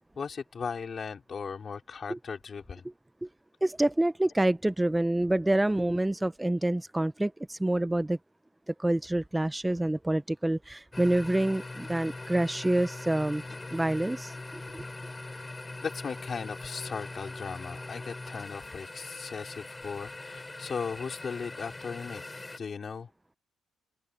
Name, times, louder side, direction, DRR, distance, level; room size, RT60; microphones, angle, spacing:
voice 1, 0.1-2.9 15.8-22.2 22.6-23.1, left 5 dB, 45° left, 4.4 m, -37 dB
voice 2, 3.6-8.2 8.7-13.4 13.7-14.8, right 1 dB, 10° right, 0.5 m, -27 dB
sound 1, 10.9-22.6, left 2 dB, 20° left, 5.2 m, -42 dB
open air
cardioid pair, 90°, 0 cm